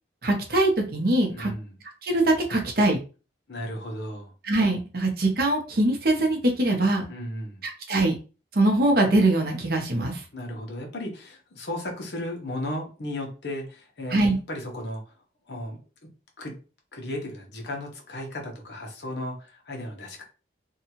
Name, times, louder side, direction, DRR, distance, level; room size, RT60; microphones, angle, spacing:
voice 1, 0.2-1.5 2.0-3.0 4.4-7.1 7.6-8.1 8.5-10.2 14.1-14.4, right 2 dB, 55° right, 2 dB, 0.7 m, -22 dB
voice 2, 1.3-1.8 3.5-4.3 7.1-7.6 10.3-14.2 14.5-15.1 15.5-15.8 16.4-16.5 16.9-20.2, left 1 dB, 70° left, 1 dB, 0.9 m, -35 dB
2.7 x 2.3 x 2.8 m, 0.34 s
head